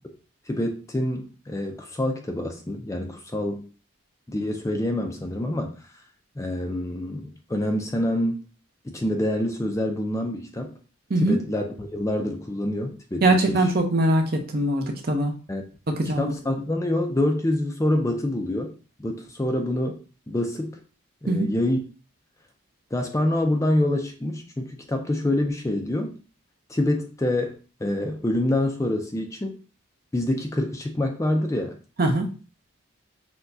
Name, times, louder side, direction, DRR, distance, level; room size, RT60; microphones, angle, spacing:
voice 1, 0.5-3.7 4.3-5.7 6.4-8.4 8.8-10.7 11.2-13.7 15.5-15.6 15.9-18.7 19.0-20.0 20.3-20.8 21.2-21.8 22.9-26.2 26.7-29.5 30.1-31.8, left 1 dB, 15° left, 4 dB, 0.4 m, -26 dB
voice 2, 13.2-15.3 15.9-16.3 21.3-21.5 32.0-32.3, right 1 dB, 45° right, 4 dB, 0.6 m, -22 dB
6.0 x 2.2 x 2.6 m, 0.36 s
head